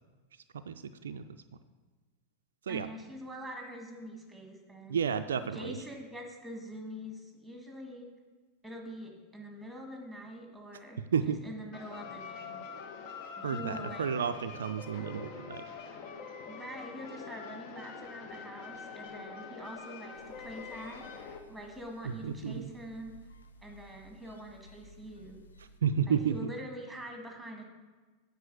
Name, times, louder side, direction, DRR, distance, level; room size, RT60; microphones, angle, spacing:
voice 1, 0.5-1.4 2.6-2.9 4.9-5.8 11.0-11.4 13.4-15.6 22.0-22.7 25.8-26.5, right 7 dB, 65° right, 9 dB, 0.3 m, -32 dB
voice 2, 2.7-5.0 5.5-8.1 8.6-12.8 13.3-14.1 16.5-23.1 23.6-25.4 26.1-27.6, equal, ahead, 1 dB, 1.9 m, -45 dB
sound 1, 11.7-21.4, left 6 dB, 45° left, 0.9 m, -44 dB
sound 2, 20.1-25.8, left 1 dB, 70° left, 0.7 m, -57 dB
9.2 x 4.9 x 6.3 m, 1.3 s
figure-of-eight pair, 90°, 0 cm